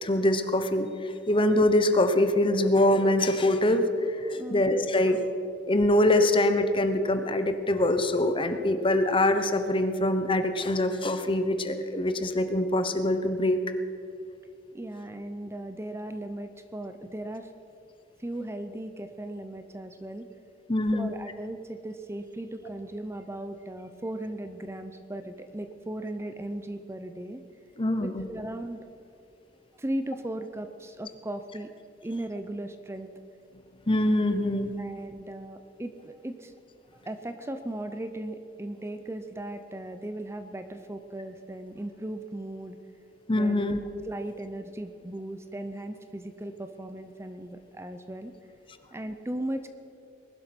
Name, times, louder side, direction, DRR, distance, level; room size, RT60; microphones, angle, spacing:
voice 1, 0.0-5.2 5.7-13.6 20.7-21.1 27.8-28.2 33.9-34.7 43.3-43.8, left 1 dB, 30° left, 9 dB, 1.0 m, -24 dB
voice 2, 14.7-17.5 18.2-20.3 20.9-27.4 28.0-28.9 29.8-31.7 32.0-33.1 34.8-36.5 36.9-42.8 43.3-43.7 44.0-48.3 48.9-49.7, right 1 dB, 15° right, 9 dB, 0.7 m, -37 dB
20.5 x 11.5 x 6.1 m, 2.5 s
head